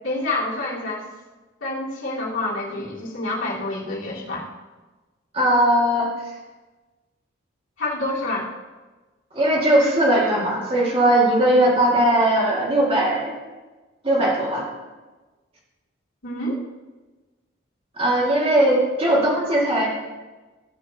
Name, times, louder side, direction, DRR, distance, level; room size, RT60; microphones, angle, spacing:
voice 1, 0.0-1.0 1.6-4.5 7.8-8.5 16.2-16.6, left 2 dB, 80° left, -7 dB, 3.3 m, -27 dB
voice 2, 5.3-6.1 9.3-13.3 14.0-14.6 18.0-19.9, right 1 dB, 30° right, -4 dB, 2.3 m, -19 dB
16.5 x 6.5 x 2.9 m, 1.2 s
head